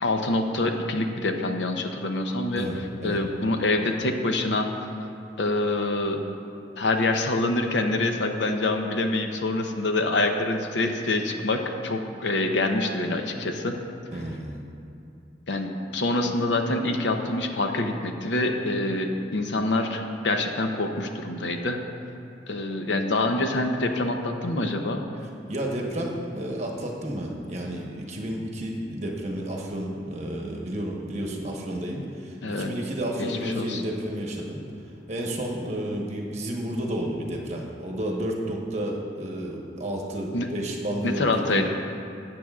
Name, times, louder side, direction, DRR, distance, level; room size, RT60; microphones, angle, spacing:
voice 1, 0.0-2.7 3.0-4.7 5.4-6.2 6.8-13.8 15.5-21.8 22.5-25.0 32.4-32.7 33.2-33.8 40.3-40.5 41.0-41.7, left 2 dB, 80° left, 5 dB, 0.7 m, -26 dB
voice 2, 14.1-14.6 25.5-34.6 35.1-41.7, right 1 dB, 40° right, -1 dB, 1.1 m, -31 dB
12.5 x 8.6 x 2.4 m, 2.7 s
head